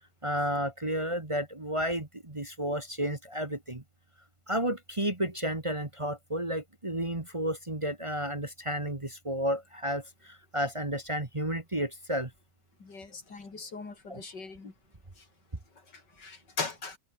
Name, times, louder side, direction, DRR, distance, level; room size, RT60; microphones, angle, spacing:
voice 1, 0.2-3.8 4.5-12.3 14.1-14.2, equal, 20° right, 1.7 m, -32 dB
voice 2, 12.8-14.7 15.9-17.0, left 4 dB, 80° left, 4.3 m, -39 dB
omnidirectional pair, 1.8 m